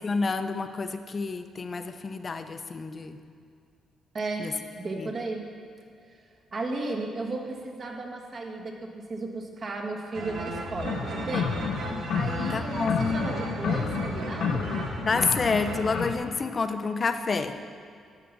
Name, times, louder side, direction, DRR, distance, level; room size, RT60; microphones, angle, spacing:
voice 1, 0.0-3.2 4.4-4.5 5.0-5.1 12.5-13.2 15.1-17.6, left 4 dB, 35° left, 8 dB, 0.7 m, -29 dB
voice 2, 4.1-4.4 4.8-5.4 6.1-6.2 6.5-11.6 12.1-14.7, right 2 dB, 40° right, 2 dB, 1.7 m, -34 dB
sound 1, 10.1-16.1, right 3 dB, 80° right, 1.5 m, -36 dB
sound 2, 10.8-16.1, left 6 dB, 70° left, 0.7 m, -31 dB
13.0 x 5.8 x 6.8 m, 2.2 s
cardioid pair, 90°, 0 cm